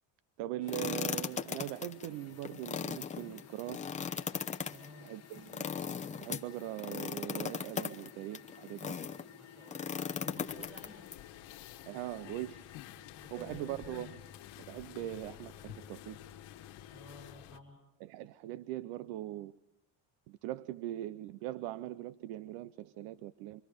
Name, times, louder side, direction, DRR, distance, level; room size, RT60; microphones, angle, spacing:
voice 1, 0.4-3.8 5.0-5.7 6.2-9.0 10.4-10.5 11.9-12.7 13.3-14.1 14.6-16.2 18.0-19.5 20.3-23.6, right 14 dB, 80° right, 18 dB, 0.8 m, -41 dB
sound 1, 0.6-17.3, left 9 dB, 30° left, 1.1 m, -56 dB
sound 2, 0.7-9.2 9.7-11.1, left 6 dB, 15° left, 0.8 m, -38 dB
voice 2, 4.7-5.2 9.3-11.1 12.9-14.1 16.9-17.8, left 2 dB, 20° right, 2 dB, 6.9 m, -53 dB
sound 3, 10.5-17.6, left 13 dB, 70° left, 1.5 m, -51 dB
27.5 x 24.5 x 5.1 m, 0.93 s
cardioid pair, 145°, 49 cm